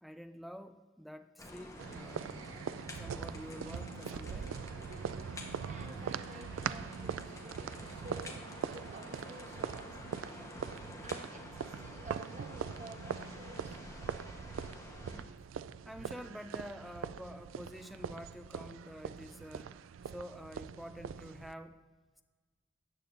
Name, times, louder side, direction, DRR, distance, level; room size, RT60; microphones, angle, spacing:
voice 1, 0.0-2.4 3.0-4.6 15.0-15.3 15.8-19.7 20.0-21.8, equal, ahead, 8 dB, 0.3 m, -48 dB
sound 1, 1.4-15.2, left 1 dB, 15° left, 1.1 m, -49 dB
sound 2, 1.8-21.5, right 7 dB, 85° right, 0.3 m, -42 dB
voice 2, 5.3-10.6 11.0-13.8, right 2 dB, 40° right, 4 dB, 1.1 m, -52 dB
13.5 x 8.9 x 2.6 m, 1.4 s
head